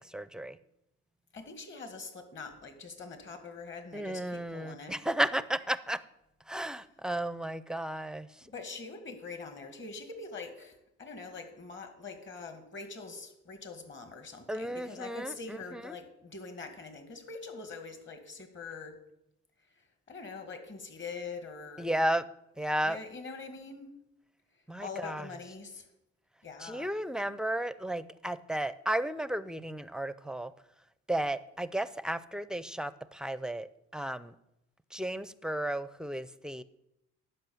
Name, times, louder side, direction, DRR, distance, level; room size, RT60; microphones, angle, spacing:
voice 1, 0.0-0.6 3.9-6.0 6.5-8.3 14.5-16.0 21.8-22.2 22.6-23.0 24.7-25.3 26.6-30.5 31.1-33.7 33.9-34.3 34.9-36.6, right 1 dB, ahead, 15 dB, 0.4 m, -33 dB
voice 2, 1.3-5.0 8.4-19.0 19.8-21.9 22.8-23.9 24.8-25.9 26.4-26.9, left 4 dB, 40° left, 7 dB, 1.9 m, -44 dB
10.5 x 5.6 x 7.0 m, 0.84 s
cardioid pair, 90°, 30 cm